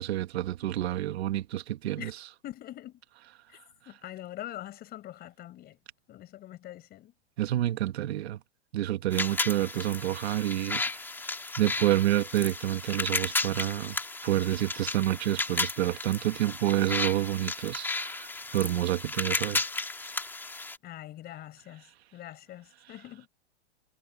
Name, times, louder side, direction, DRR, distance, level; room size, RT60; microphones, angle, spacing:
voice 1, 0.0-2.3 7.4-8.4 8.7-11.1 11.6-14.0 14.2-19.6, right 14 dB, 65° right, 1.9 m, -28 dB
voice 2, 2.4-3.0 3.5-3.6 3.9-5.8 6.1-7.1 20.8-23.3, left 13 dB, 25° left, 5.5 m, -44 dB
sound 1, 9.1-20.8, left 3 dB, 5° left, 2.1 m, -34 dB
hypercardioid pair, 145°, 34 cm